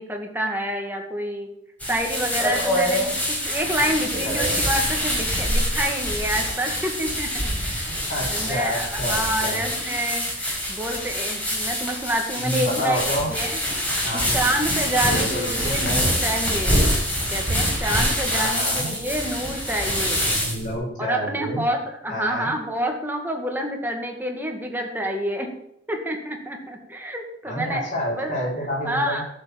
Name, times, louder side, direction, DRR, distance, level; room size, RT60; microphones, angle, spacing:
voice 1, 0.0-1.5 1.9-8.0 8.3-13.0 13.3-13.6 14.1-16.8 17.3-20.2 21.0-25.5 25.9-28.4 28.8-29.3, right 1 dB, 10° right, 2 dB, 2.1 m, -28 dB
sound 1, 1.8-20.7, equal, 10° left, 5.4 m, -25 dB
voice 2, 4.2-4.6 8.1-9.6 12.3-13.3 14.0-14.4 15.0-15.9 18.3-19.0 19.8-20.0 20.2-21.6 22.1-22.5 27.4-29.1, equal, 45° left, -5 dB, 6.0 m, -29 dB
11.5 x 7.3 x 7.1 m, 0.76 s
head